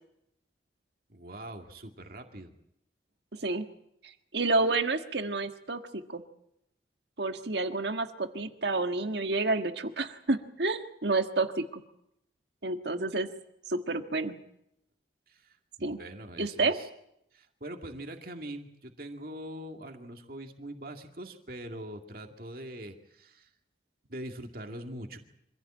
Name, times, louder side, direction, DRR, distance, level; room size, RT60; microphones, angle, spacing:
voice 1, 1.1-2.5 15.3-16.9 17.3-23.5 24.1-25.2, right 1 dB, 50° right, 4 dB, 2.2 m, -43 dB
voice 2, 3.3-3.6 4.0-6.2 7.2-11.8 12.6-13.3 13.7-14.3 15.8-16.0 16.4-16.8, right 3 dB, 70° right, 7 dB, 1.7 m, -29 dB
25.5 x 16.0 x 8.8 m, 0.79 s
head